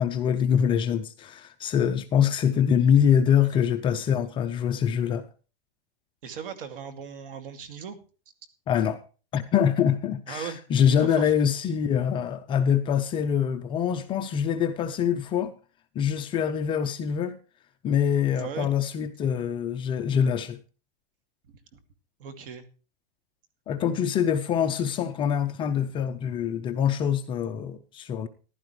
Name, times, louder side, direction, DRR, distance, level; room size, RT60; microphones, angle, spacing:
voice 1, 0.0-5.3 8.7-9.0 9.3-15.5 16.0-17.4 17.8-20.6 23.7-28.3, left 8 dB, 15° left, 0.5 m, -24 dB
voice 2, 6.2-8.0 10.3-10.6 10.9-11.3 18.4-18.7 21.5-21.8 22.2-22.7, right 7 dB, 65° right, 2.5 m, -38 dB
15.0 x 11.5 x 3.2 m
supercardioid pair, 155°, 30 cm